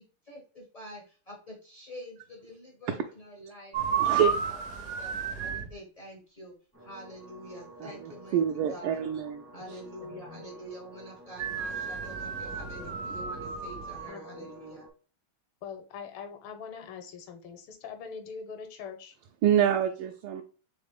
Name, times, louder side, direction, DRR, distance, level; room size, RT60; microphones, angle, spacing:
voice 1, 0.0-6.5 6.8-8.4 8.7-9.0 9.5-14.9, equal, 50° left, 0.4 m, -47 dB
sound 1, 3.7-5.7 11.4-14.1, right 5 dB, 65° right, 0.9 m, -32 dB
voice 2, 4.0-4.3 7.8-9.8 19.4-20.4, right 10 dB, 80° right, 1.5 m, -27 dB
sound 2, 6.7-14.9, right 2 dB, 25° right, 0.4 m, -50 dB
voice 3, 10.0-10.4 12.6-13.0 14.1-14.5 15.6-19.2, left 6 dB, 80° left, 1.6 m, -43 dB
4.0 x 3.6 x 3.5 m
omnidirectional pair, 2.4 m